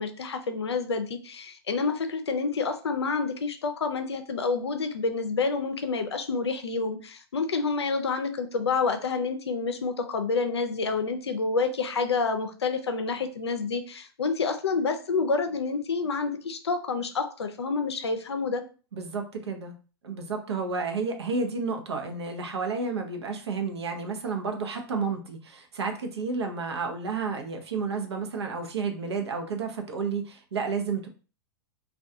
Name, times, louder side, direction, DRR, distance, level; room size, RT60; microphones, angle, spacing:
voice 1, 0.0-18.6, left 4 dB, 85° left, 7 dB, 0.5 m, -28 dB
voice 2, 18.9-19.7 20.0-31.1, right 4 dB, 80° right, 4 dB, 0.6 m, -31 dB
2.3 x 2.3 x 2.6 m, 0.37 s
hypercardioid pair, 110°, 14 cm